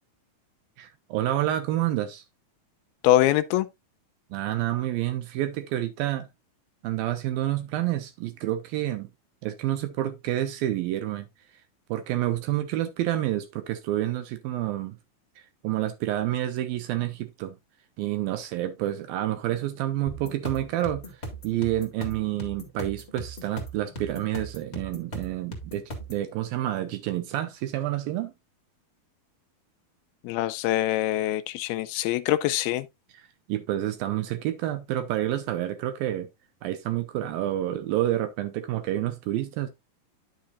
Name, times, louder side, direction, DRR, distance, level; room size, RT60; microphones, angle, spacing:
voice 1, 0.8-2.2 4.3-6.3 6.8-9.1 9.4-11.3 11.9-15.0 15.4-17.6 18.0-21.0 21.4-28.3 33.5-36.3 36.6-39.7, right 13 dB, 75° right, 2.5 m, -29 dB
voice 2, 3.0-3.7 30.2-32.9, left 14 dB, 85° left, 2.5 m, -24 dB
sound 1, 20.1-26.2, right 1 dB, 30° left, 1.3 m, -38 dB
10.5 x 6.5 x 2.5 m
omnidirectional pair, 4.4 m